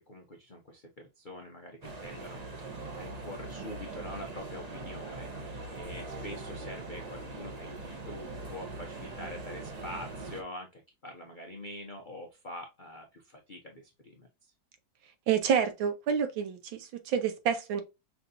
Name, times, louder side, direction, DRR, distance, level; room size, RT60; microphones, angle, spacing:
voice 1, 0.1-14.3, left 1 dB, 75° left, 0.4 m, -45 dB
sound 1, 1.8-10.4, right 2 dB, 45° right, 0.5 m, -41 dB
voice 2, 15.3-17.8, right 7 dB, 80° right, 1.7 m, -28 dB
5.8 x 2.6 x 2.6 m
omnidirectional pair, 2.1 m